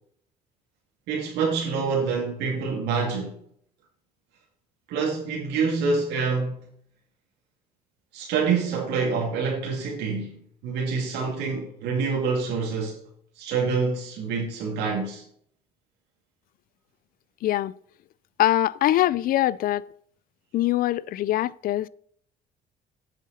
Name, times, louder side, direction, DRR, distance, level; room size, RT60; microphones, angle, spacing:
voice 1, 1.1-3.3 4.9-6.7 8.1-13.0 13.4-15.2, right 5 dB, 85° right, 2.3 m, -26 dB
voice 2, 17.4-17.7 18.4-19.8 20.5-21.9, left 14 dB, 60° left, 0.4 m, -23 dB
9.2 x 7.7 x 4.2 m
cardioid pair, 110°, 17 cm